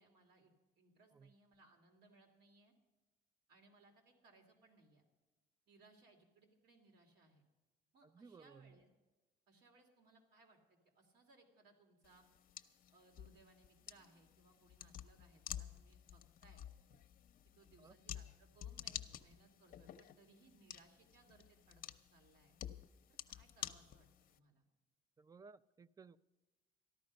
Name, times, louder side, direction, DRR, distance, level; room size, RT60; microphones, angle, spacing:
voice 1, 0.0-2.7 3.5-5.0 5.7-7.4 7.9-8.9 9.5-12.3 12.9-16.6 17.5-21.8 22.1-22.6 23.1-24.6, right 3 dB, 75° right, 2.9 m, -67 dB
voice 2, 8.0-8.8 17.8-18.0 25.2-26.2, right 5 dB, 20° right, 0.4 m, -59 dB
sound 1, 12.0-24.4, left 11 dB, 55° left, 0.7 m, -51 dB
14.0 x 11.5 x 5.3 m
cardioid pair, 110°, 17 cm